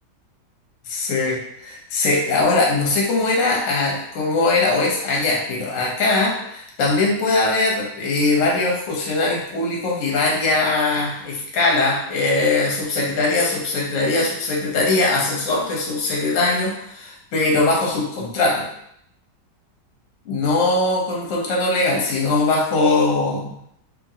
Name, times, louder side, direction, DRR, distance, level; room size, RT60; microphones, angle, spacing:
voice 1, 0.9-18.7 20.3-23.5, left 3 dB, 60° left, -2 dB, 0.9 m, -21 dB
2.9 x 2.4 x 2.7 m, 0.73 s
omnidirectional pair, 2.0 m